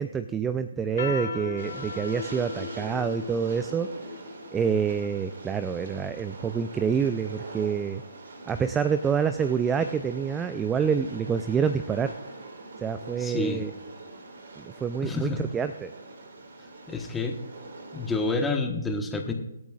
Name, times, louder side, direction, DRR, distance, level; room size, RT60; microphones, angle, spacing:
voice 1, 0.0-3.9 4.5-8.0 8.5-12.1 12.8-13.7 14.6-15.9, right 7 dB, 10° right, 11 dB, 0.4 m, -27 dB
sound 1, 0.8-5.6, left 7 dB, 55° left, 0.7 m, -38 dB
Train, 1.6-18.5, right 2 dB, 60° right, 2.3 m, -43 dB
voice 2, 13.2-13.6 15.0-15.4 16.9-17.4 17.9-19.3, left 3 dB, 10° left, 3 dB, 1.3 m, -28 dB
24.5 x 8.9 x 2.4 m, 0.94 s
figure-of-eight pair, 140°, 0 cm